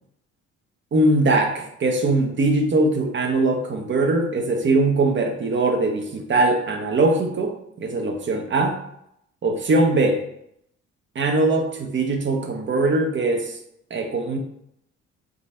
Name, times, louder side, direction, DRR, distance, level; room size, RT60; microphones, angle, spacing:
voice 1, 0.9-8.8 9.4-10.2 11.1-13.6 13.9-14.4, right 2 dB, 40° right, 4 dB, 0.8 m, -21 dB
3.9 x 2.5 x 4.2 m, 0.75 s
cardioid pair, 90°, 30 cm